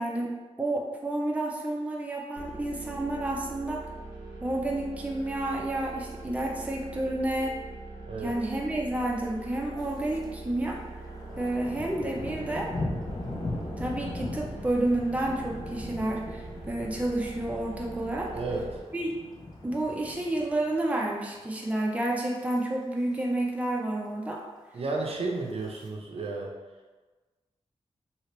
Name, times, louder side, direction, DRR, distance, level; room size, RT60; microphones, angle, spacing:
voice 1, 0.0-3.8 4.4-7.6 8.2-10.8 11.4-12.7 13.8-18.3 18.9-19.1 19.6-24.4, right 1 dB, 10° right, -1 dB, 0.5 m, -30 dB
sound 1, 2.4-18.8, right 3 dB, 40° right, 0.9 m, -42 dB
Thunder, 9.8-10.3 10.6-21.0 21.3-21.7 22.1-22.6 22.8-22.9 23.1-23.2 23.6-24.2 24.9-25.9, left 2 dB, 35° left, 0.7 m, -39 dB
voice 2, 18.3-18.7 24.7-26.6, right 3 dB, 60° right, -1 dB, 0.5 m, -32 dB
2.8 x 2.8 x 3.2 m, 1.3 s
wide cardioid pair, 85°, 11 cm